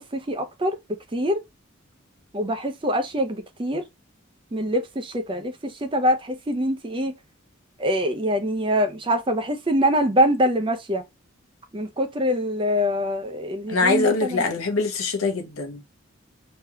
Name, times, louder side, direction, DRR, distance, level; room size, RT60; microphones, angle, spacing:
voice 1, 0.0-1.4 2.3-3.8 4.5-7.1 7.8-11.0 11.7-14.4, equal, 25° right, 0.5 m, -24 dB
voice 2, 13.7-15.8, left 3 dB, 85° left, 1.0 m, -23 dB
3.2 x 2.8 x 2.2 m
head